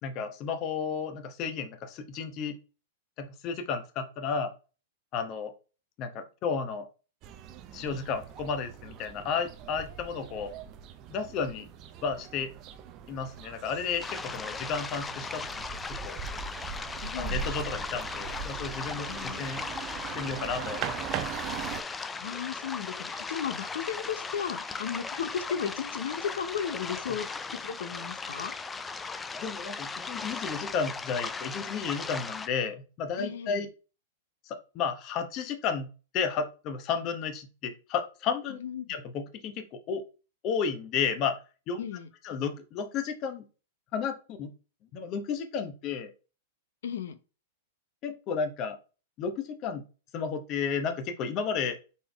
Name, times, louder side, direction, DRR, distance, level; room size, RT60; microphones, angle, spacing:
voice 1, 0.0-2.6 3.2-4.5 5.1-5.5 6.0-6.9 7.7-10.5 11.1-11.7 12.0-12.5 13.1-15.6 15.9-16.2 17.1-19.6 20.1-20.8 27.1-27.2 29.4-33.7 34.5-38.6 38.9-40.0 40.4-41.4 41.7-41.8 42.2-43.4 43.9-44.5 44.9-46.1 48.0-48.8 49.2-49.8 50.1-51.8, left 6 dB, 35° left, 7 dB, 0.9 m, -32 dB
sound 1, 7.2-21.8, right 8 dB, 40° right, 0.5 m, -40 dB
sound 2, 14.0-32.5, left 4 dB, 15° left, 0.3 m, -37 dB
voice 2, 17.0-17.5 19.1-19.5 22.2-28.5 33.2-33.7 38.6-38.9 41.8-42.1 46.8-47.2, left 8 dB, 80° left, 12 dB, 0.6 m, -35 dB
4.2 x 3.6 x 3.4 m, 0.33 s
hypercardioid pair, 130°, 0 cm